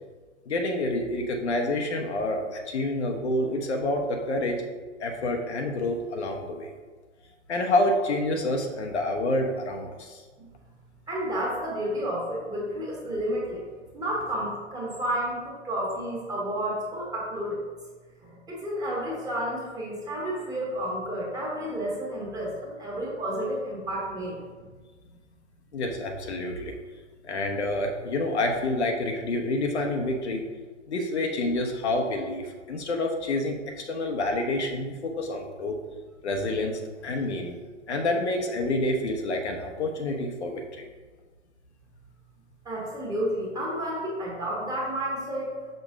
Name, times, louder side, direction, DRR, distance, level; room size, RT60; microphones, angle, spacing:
voice 1, 0.5-4.6 5.0-6.7 7.5-10.2 25.7-26.7 27.2-30.5 30.9-35.8 36.2-37.6 37.9-40.8, left 1 dB, 60° left, 3 dB, 0.9 m, -28 dB
voice 2, 11.1-13.6 13.9-17.7 18.2-24.4 42.6-45.5, equal, 10° right, -4 dB, 1.4 m, -31 dB
6.0 x 5.3 x 3.6 m, 1.4 s
figure-of-eight pair, 115°, 37 cm